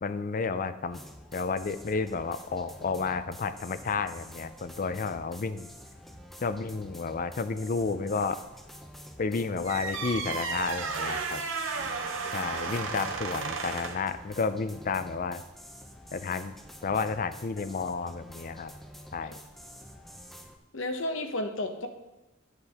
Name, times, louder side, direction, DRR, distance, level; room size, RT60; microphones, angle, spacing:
voice 1, 0.0-1.0 1.3-5.7 6.4-8.4 9.2-11.4 12.3-15.4 16.1-16.5 16.8-18.7 19.1-19.4, left 4 dB, 40° left, 12 dB, 0.5 m, -31 dB
sound 1, 0.9-20.6, equal, ahead, 0.7 m, -48 dB
sound 2, 9.7-14.1, right 4 dB, 65° right, 0.9 m, -33 dB
voice 2, 11.7-12.5 20.7-21.9, left 1 dB, 70° left, 6 dB, 1.0 m, -34 dB
9.7 x 8.1 x 3.5 m, 0.96 s
head